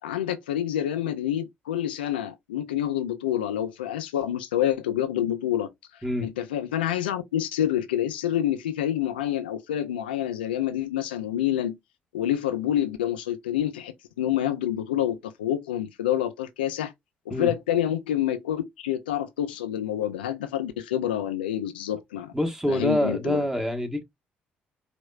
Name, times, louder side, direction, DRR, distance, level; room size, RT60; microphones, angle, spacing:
voice 1, 0.0-5.7 6.2-11.8 12.1-16.9 17.3-22.3 22.7-23.4, left 11 dB, 80° left, 0.4 m, -27 dB
voice 2, 22.3-24.0, left 1 dB, 10° right, 1.4 m, -26 dB
5.0 x 3.0 x 2.4 m
figure-of-eight pair, 45°, 5 cm